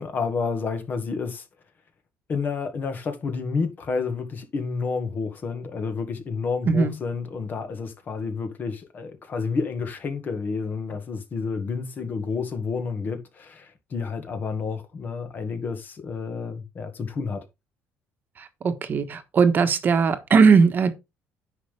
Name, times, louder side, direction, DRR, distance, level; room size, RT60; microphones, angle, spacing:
voice 1, 0.0-1.4 2.3-17.5, left 5 dB, 40° left, 1.8 m, -30 dB
voice 2, 6.6-7.0 18.4-20.9, right 5 dB, 40° right, 1.3 m, -19 dB
9.8 x 5.7 x 3.4 m
cardioid pair, 125°, 5 cm